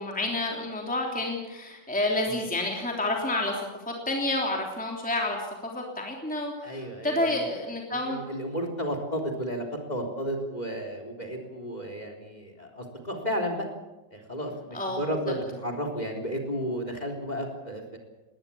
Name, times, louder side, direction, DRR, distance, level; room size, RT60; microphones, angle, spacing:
voice 1, 0.0-8.2 14.7-15.0, left 2 dB, 5° left, 0 dB, 3.2 m, -29 dB
voice 2, 6.6-7.5 7.9-13.7 14.1-18.0, equal, 20° left, 5 dB, 3.9 m, -33 dB
20.0 x 19.5 x 8.6 m, 1.0 s
omnidirectional pair, 2.0 m